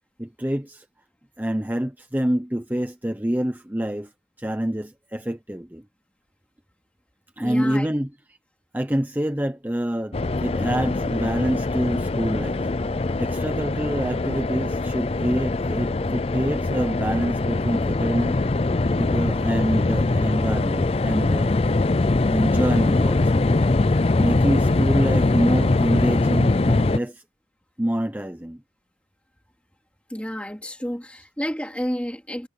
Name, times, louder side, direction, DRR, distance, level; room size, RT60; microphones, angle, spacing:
voice 1, 0.2-0.8 1.4-4.1 4.4-5.8 7.4-8.1 8.7-12.7 12.9-18.4 19.0-21.5 22.3-23.4 24.2-27.2 27.8-28.6, equal, 10° right, 0.7 m, -26 dB
voice 2, 7.4-7.9 30.1-32.5, equal, 5° left, 2.7 m, -30 dB
sound 1, 10.1-27.0, left 2 dB, 30° left, 0.4 m, -22 dB
head